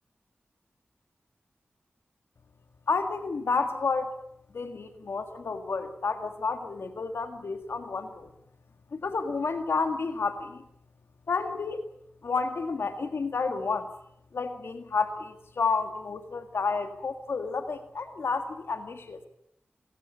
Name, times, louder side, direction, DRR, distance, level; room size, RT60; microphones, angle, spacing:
voice 1, 2.9-4.1 4.5-8.3 8.9-10.6 11.3-11.8 12.2-13.9 14.3-19.3, left 4 dB, 80° left, 8 dB, 1.9 m, -30 dB
28.5 x 14.5 x 8.5 m, 0.78 s
cardioid pair, 45°, 4 cm